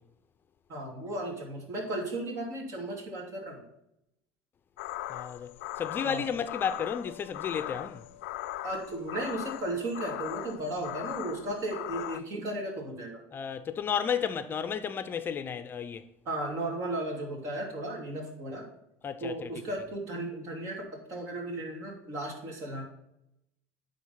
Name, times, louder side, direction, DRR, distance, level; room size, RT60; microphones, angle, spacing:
voice 1, 0.7-3.6 6.0-6.3 8.6-13.2 16.2-18.7 19.2-22.8, right 1 dB, 50° right, 2.8 m, -35 dB
sound 1, 4.8-12.2, left 15 dB, 90° left, 0.3 m, -39 dB
voice 2, 5.1-8.0 13.3-16.0 19.0-19.5, left 7 dB, 35° left, 0.5 m, -33 dB
9.8 x 4.0 x 5.7 m
supercardioid pair, 105°, 6 cm